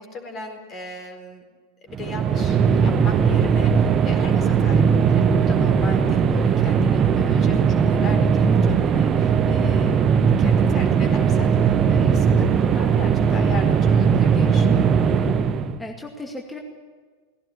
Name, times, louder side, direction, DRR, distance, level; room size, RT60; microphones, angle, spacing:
voice 1, 0.0-1.4 1.8-10.0 10.4-14.9, left 3 dB, 30° left, 5 dB, 4.3 m, -38 dB
sound 1, 1.9-15.8, right 6 dB, 25° right, 1.1 m, -19 dB
voice 2, 15.8-16.6, left 2 dB, 10° left, 1 dB, 2.3 m, -36 dB
19.5 x 17.0 x 10.0 m, 1.5 s
figure-of-eight pair, 90°, 0 cm